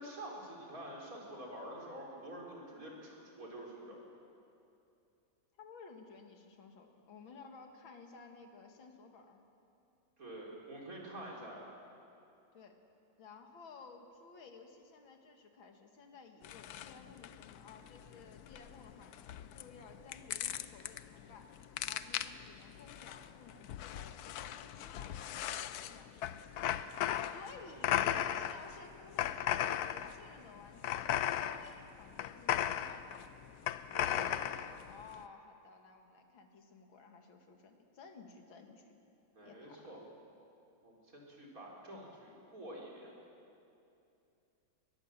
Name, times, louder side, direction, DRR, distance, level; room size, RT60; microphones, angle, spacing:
voice 1, 0.0-4.0 10.2-11.6 33.9-34.4 39.3-40.0 40.8-43.1, right 1 dB, 45° right, -3 dB, 4.6 m, -47 dB
voice 2, 5.6-9.4 12.5-12.8 13.2-21.5 21.9-26.6 27.2-33.4 34.8-38.9 39.4-39.8, left 4 dB, 85° left, 4 dB, 2.6 m, -55 dB
sound 1, 16.4-35.2, left 11 dB, 65° left, 1.0 m, -37 dB
22.5 x 20.5 x 7.4 m, 2.7 s
omnidirectional pair, 2.1 m